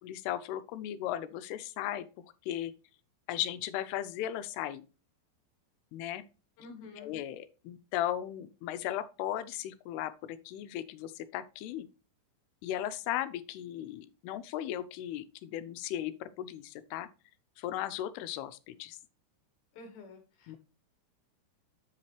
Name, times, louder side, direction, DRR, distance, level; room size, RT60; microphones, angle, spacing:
voice 1, 0.0-2.1 2.4-2.7 3.3-4.8 5.9-6.2 7.0-11.9 12.6-17.1 17.6-19.0 20.5-20.6, left 12 dB, 85° left, 2.6 m, -36 dB
voice 2, 6.6-7.1 19.7-20.6, left 3 dB, 70° left, 3.0 m, -49 dB
7.9 x 5.9 x 3.0 m
omnidirectional pair, 4.6 m